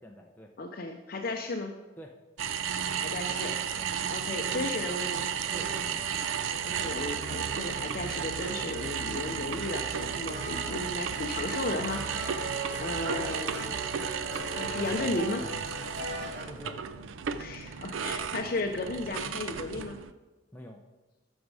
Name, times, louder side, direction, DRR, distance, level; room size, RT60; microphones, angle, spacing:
voice 1, 0.0-0.5 2.0-2.1 3.8-3.9 5.5-6.2 9.2-9.4 16.5-16.8 20.5-20.8, equal, 10° left, 0 dB, 0.6 m, -47 dB
voice 2, 0.6-1.7 3.0-3.8 4.1-5.3 6.6-12.5 12.8-13.8 14.5-15.5 17.4-20.0, left 2 dB, 45° left, 4 dB, 0.6 m, -35 dB
sound 1, 2.4-20.1, right 7 dB, 75° right, 0.5 m, -34 dB
sound 2, 5.4-16.4, right 1 dB, 55° right, 1.3 m, -41 dB
12.5 x 6.3 x 4.8 m, 1.2 s
head